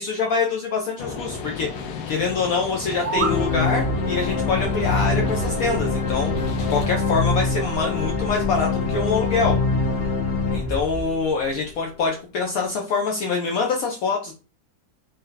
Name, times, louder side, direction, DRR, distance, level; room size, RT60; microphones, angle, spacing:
voice 1, 0.0-9.6 10.5-14.3, left 4 dB, 70° left, 0 dB, 1.0 m, -25 dB
sound 1, 1.0-6.9, left 5 dB, 90° left, 1.2 m, -33 dB
sound 2, 2.7-3.4, right 6 dB, 65° right, 0.7 m, -27 dB
sound 3, 3.2-11.6, left 3 dB, 45° left, 0.9 m, -24 dB
3.2 x 2.8 x 3.8 m, 0.35 s
omnidirectional pair, 1.7 m